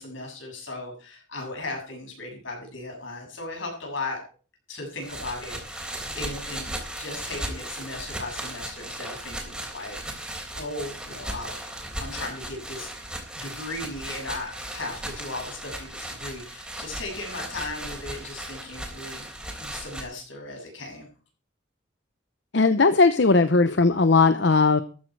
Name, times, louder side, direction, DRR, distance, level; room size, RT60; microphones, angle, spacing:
voice 1, 0.0-4.2 4.7-11.6 12.0-12.9 13.3-19.3 19.6-21.1, left 2 dB, 85° left, 0 dB, 7.4 m, -37 dB
sound 1, 5.0-20.0, right 1 dB, 5° right, 3.6 m, -36 dB
voice 2, 22.5-24.8, left 3 dB, 65° left, 11 dB, 0.8 m, -18 dB
14.0 x 10.5 x 4.7 m, 0.38 s
head